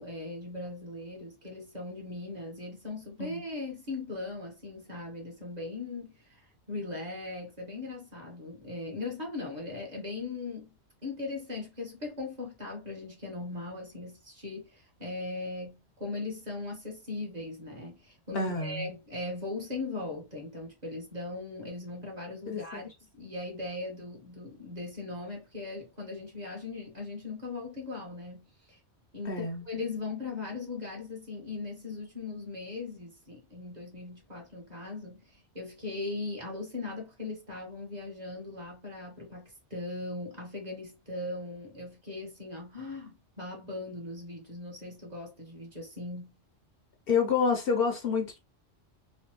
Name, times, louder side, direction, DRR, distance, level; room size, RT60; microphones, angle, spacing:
voice 1, 0.0-10.7 11.0-22.9 23.2-28.8 29.1-46.4, left 3 dB, 35° right, 1.3 m, -39 dB
voice 2, 18.3-18.9 22.5-22.8 29.2-29.6 47.1-48.4, left 5 dB, 60° left, 0.9 m, -28 dB
3.3 x 2.6 x 3.0 m
omnidirectional pair, 1.2 m